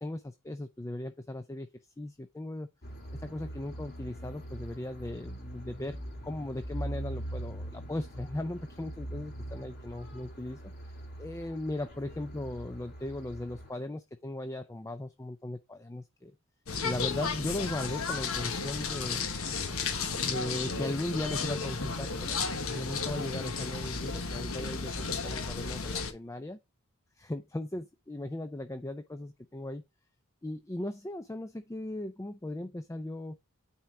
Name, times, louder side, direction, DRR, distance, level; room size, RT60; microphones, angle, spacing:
voice 1, 0.0-1.7 2.0-2.7 3.2-6.0 6.2-16.3 16.8-19.3 20.2-26.6 27.2-29.8 30.4-33.4, left 1 dB, 15° left, 0.4 m, -38 dB
sound 1, 2.8-13.7, right 1 dB, 45° left, 2.9 m, -42 dB
sound 2, 16.7-26.1, left 4 dB, 70° left, 1.3 m, -33 dB
9.1 x 4.4 x 3.7 m
head